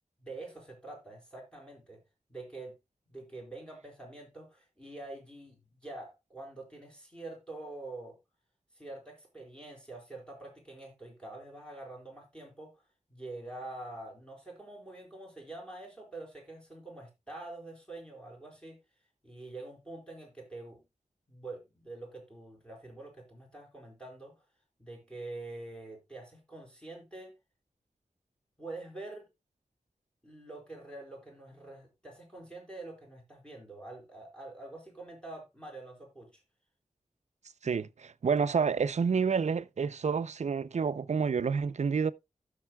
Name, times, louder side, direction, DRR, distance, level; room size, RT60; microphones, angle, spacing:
voice 1, 0.2-2.0 2.3-2.7 3.1-8.2 8.8-12.8 13.1-18.8 19.2-20.8 21.3-24.3 24.8-27.3 28.6-29.3 30.2-36.4, right 2 dB, 5° left, 4.5 m, -46 dB
voice 2, 37.6-42.1, right 6 dB, 65° right, 0.5 m, -29 dB
16.0 x 6.6 x 2.2 m
wide cardioid pair, 100°, 13 cm